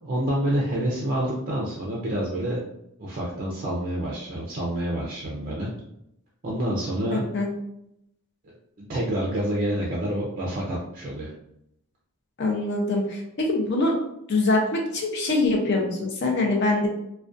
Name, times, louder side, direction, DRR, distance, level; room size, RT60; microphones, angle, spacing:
voice 1, 0.0-2.6 3.0-5.7 6.4-7.3 8.4-11.3, right 1 dB, 40° right, -4 dB, 0.4 m, -28 dB
voice 2, 7.1-7.5 12.4-13.9 14.3-16.9, left 2 dB, 50° left, 1 dB, 0.5 m, -24 dB
2.4 x 2.2 x 2.4 m, 0.80 s
head